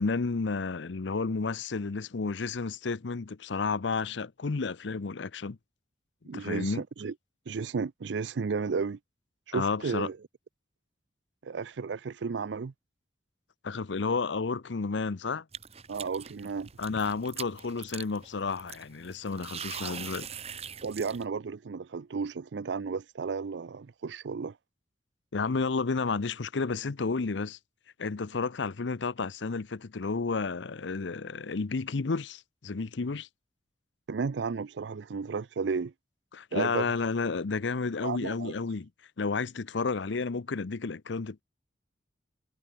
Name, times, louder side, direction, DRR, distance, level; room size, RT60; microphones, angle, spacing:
voice 1, 0.0-5.6 6.3-6.8 9.5-10.1 13.6-15.4 16.8-20.3 25.3-27.6 28.0-33.3 36.3-38.9 39.2-41.4, left 4 dB, 80° left, 0.7 m, -31 dB
voice 2, 6.2-7.1 7.5-9.0 9.5-10.2 11.4-12.7 15.9-16.7 20.8-24.6 34.1-35.9 36.5-36.9 38.0-38.5, right 5 dB, 75° right, 0.5 m, -33 dB
sound 1, 15.5-21.3, right 7 dB, 35° right, 1.7 m, -42 dB
head